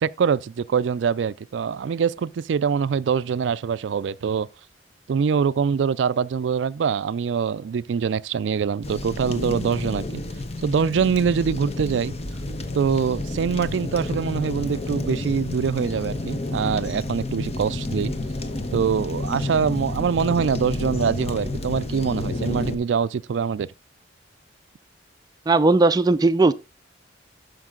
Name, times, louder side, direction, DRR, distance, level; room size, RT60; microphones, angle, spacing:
voice 1, 0.0-4.5 5.1-10.2 10.6-12.1 12.7-18.1 18.7-23.7, right 6 dB, 85° right, 0.4 m, -24 dB
sound 1, 8.8-22.8, left 2 dB, 35° left, 1.0 m, -30 dB
voice 2, 25.5-26.5, right 3 dB, 20° right, 0.4 m, -17 dB
12.0 x 5.3 x 3.7 m
head